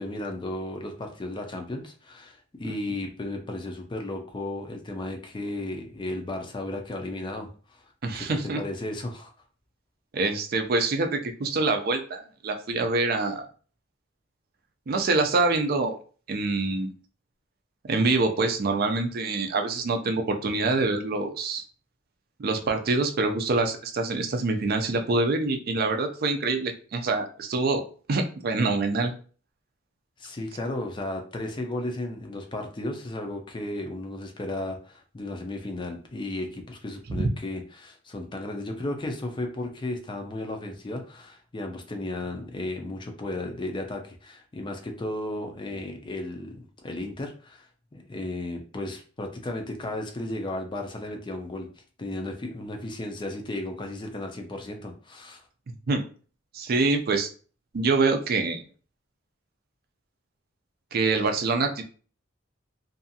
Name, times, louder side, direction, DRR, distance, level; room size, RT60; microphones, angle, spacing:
voice 1, 0.0-7.8 8.1-9.3 30.2-51.7 52.0-55.4, left 1 dB, 25° left, 3 dB, 0.4 m, -34 dB
voice 2, 8.0-8.6 10.1-13.4 14.9-16.0 16.3-16.9 17.9-21.6 22.4-27.8 28.1-29.1 37.1-37.3 55.7-56.0 56.5-57.3 57.7-58.6 60.9-61.8, right 3 dB, 50° right, 5 dB, 0.4 m, -25 dB
2.6 x 2.4 x 2.7 m, 0.40 s
head